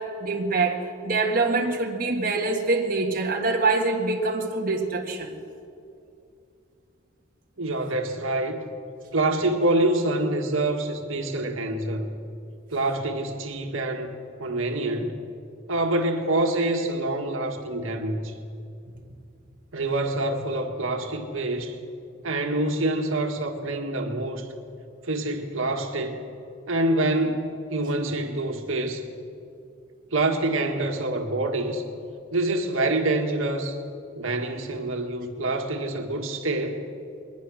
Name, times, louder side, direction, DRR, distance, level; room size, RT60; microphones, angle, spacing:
voice 1, 0.0-5.4, right 3 dB, 40° right, 0 dB, 1.6 m, -25 dB
voice 2, 7.6-8.6 9.1-12.1 12.7-14.1 14.4-15.2 15.7-18.3 19.7-21.8 22.2-24.5 25.0-26.2 26.7-29.0 30.1-31.8 32.3-33.8 34.2-36.9, right 2 dB, 80° right, 4 dB, 1.7 m, -26 dB
21.5 x 20.0 x 6.3 m, 2.5 s
head